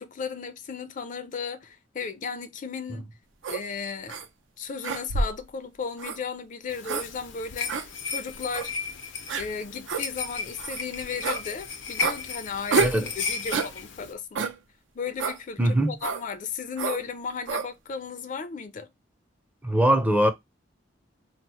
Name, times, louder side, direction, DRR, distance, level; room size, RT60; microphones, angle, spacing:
voice 1, 0.0-3.1 3.5-4.2 4.6-7.7 8.1-8.7 9.4-14.5 14.9-18.9, left 5 dB, 45° left, 0.4 m, -35 dB
sound 1, 3.4-3.6 4.1-4.3 4.8-5.4 6.0-6.2 6.8-7.1 7.7-7.9 8.5-8.7 9.3-9.5 9.9-10.0 10.6-10.8 11.2-11.4 12.0-12.2 12.7-13.0 13.5-13.7 14.4-14.6 15.2-15.4 16.0-16.2 16.8-17.0 17.5-17.7, right 4 dB, 85° right, 0.6 m, -28 dB
sound 2, 6.7-14.1, left 5 dB, 90° left, 0.7 m, -35 dB
voice 2, 12.8-13.1 15.6-15.9 19.6-20.3, right 1 dB, 10° right, 0.4 m, -21 dB
2.9 x 2.0 x 4.1 m
head